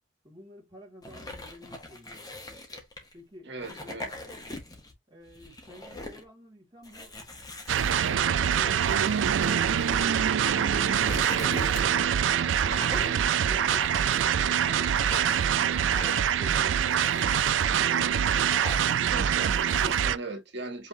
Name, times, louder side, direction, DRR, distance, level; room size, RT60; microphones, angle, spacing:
voice 1, 0.2-2.3 3.1-4.1 5.1-7.2 7.8-9.3 12.8-15.6 16.0-17.3, equal, 25° right, 2.2 m, -51 dB
sound 1, 1.0-3.1 3.6-4.9 5.3-6.2 6.8-10.1 10.6-12.1 12.6-13.2 13.7-14.6 14.9-15.5 15.9-16.4 16.8-17.6 18.1-19.1 19.4-20.1, left 2 dB, 20° left, 1.5 m, -41 dB
voice 2, 3.5-4.1 19.1-20.9, right 2 dB, 65° right, 1.8 m, -38 dB
sound 2, 7.7-20.2, right 8 dB, 90° right, 0.4 m, -25 dB
5.5 x 3.5 x 2.7 m
head